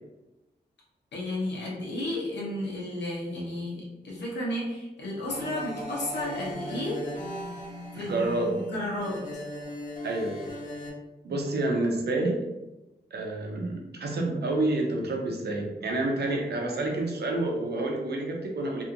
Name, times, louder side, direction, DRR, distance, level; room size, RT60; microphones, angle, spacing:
voice 1, 1.1-7.0 7.9-9.2, left 1 dB, 90° left, -4 dB, 0.9 m, -33 dB
sound 1, 5.2-10.9, equal, 50° left, 1.3 m, -38 dB
voice 2, 7.9-8.6 10.0-10.4 11.2-12.4 13.1-18.8, right 2 dB, 70° right, 0 dB, 0.6 m, -28 dB
2.7 x 2.4 x 2.7 m, 1.0 s
wide cardioid pair, 85°, 18 cm